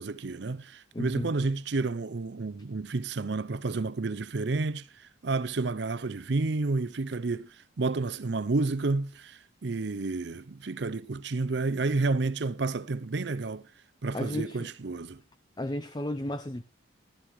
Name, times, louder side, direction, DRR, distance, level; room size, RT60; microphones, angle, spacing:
voice 1, 0.0-13.7 14.0-15.2, right 3 dB, 55° right, 0.6 m, -30 dB
voice 2, 0.9-1.3 14.1-14.7 15.6-16.6, left 1 dB, 20° left, 0.6 m, -33 dB
15.0 x 13.0 x 3.1 m
head